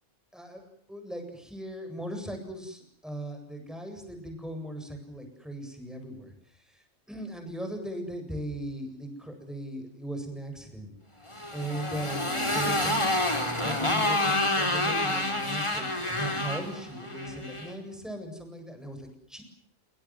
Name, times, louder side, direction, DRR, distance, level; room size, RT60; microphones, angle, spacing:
voice 1, 0.3-10.9 11.5-13.1 13.6-19.4, right 1 dB, ahead, 5 dB, 8.0 m, -38 dB
Motorcycle, 11.3-17.7, left 1 dB, 25° left, 4.5 m, -28 dB
28.0 x 25.5 x 7.8 m, 0.62 s
omnidirectional pair, 1.3 m